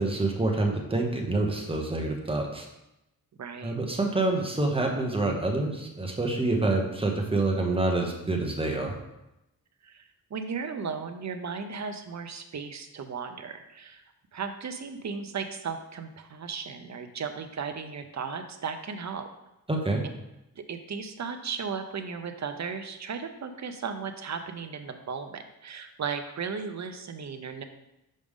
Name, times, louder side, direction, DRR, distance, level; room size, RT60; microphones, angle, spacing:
voice 1, 0.0-2.7 3.6-8.9 19.7-20.0, right 2 dB, 15° right, 1 dB, 1.0 m, -27 dB
voice 2, 3.4-3.8 9.8-10.0 10.3-14.0 14.3-19.3 20.6-27.6, right 5 dB, 50° right, 7 dB, 0.6 m, -36 dB
6.4 x 5.0 x 3.6 m, 0.91 s
wide cardioid pair, 140°, 37 cm